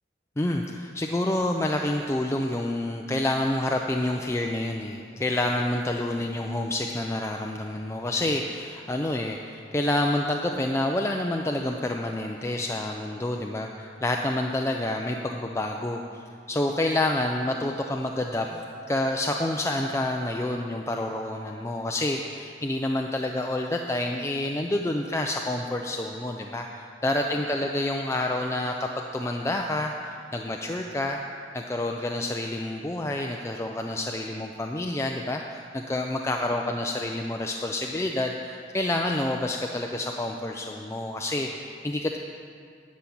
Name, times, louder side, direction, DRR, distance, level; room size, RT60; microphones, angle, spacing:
voice 1, 0.4-31.2 31.5-42.2, left 1 dB, 15° left, 2 dB, 0.4 m, -28 dB
11.5 x 5.9 x 8.5 m, 2.3 s
head